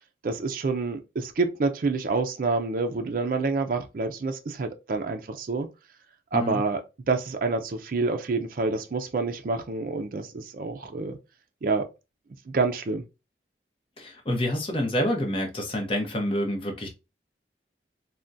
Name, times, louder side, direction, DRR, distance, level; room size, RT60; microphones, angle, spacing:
voice 1, 0.2-5.7 6.3-11.2 11.6-11.9 12.5-13.0, right 3 dB, 50° right, 0.4 m, -27 dB
voice 2, 14.0-16.9, left 1 dB, 30° left, 0.8 m, -27 dB
3.5 x 2.2 x 2.5 m
head